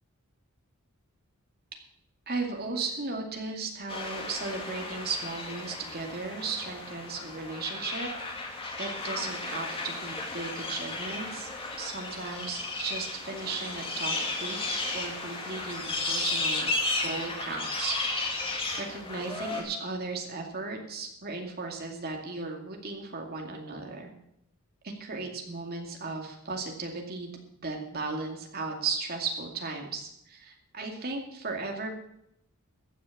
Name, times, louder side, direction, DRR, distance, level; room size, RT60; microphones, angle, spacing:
voice 1, 2.3-8.1 8.8-11.5 11.8-16.7 17.0-24.1 25.0-27.3 27.6-31.9, right 3 dB, 45° right, 2 dB, 2.4 m, -36 dB
sound 1, 3.9-19.6, left 2 dB, 25° left, 2.3 m, -34 dB
14.5 x 6.6 x 8.5 m, 0.77 s
head